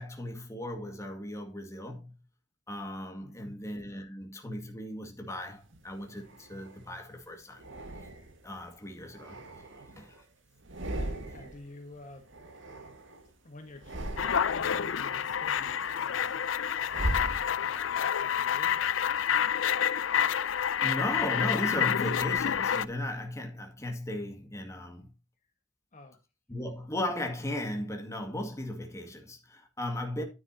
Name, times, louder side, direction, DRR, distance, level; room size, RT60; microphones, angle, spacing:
voice 1, 0.0-2.2 2.7-7.6 8.4-9.4 10.0-10.2 11.2-11.3 20.8-25.1 26.5-30.2, left 1 dB, 15° left, 2.0 m, -36 dB
voice 2, 3.2-3.6 10.9-12.3 13.4-16.6 17.6-18.8 25.9-26.2, left 2 dB, 40° left, 1.4 m, -49 dB
sound 1, 5.7-6.9 7.6-8.5 9.0-10.2 10.6-11.7 11.9-13.3 13.7-14.8 15.2-18.0, right 1 dB, 75° right, 1.9 m, -39 dB
sound 2, 14.2-22.9, left 8 dB, 85° left, 0.5 m, -28 dB
9.8 x 9.3 x 2.7 m
head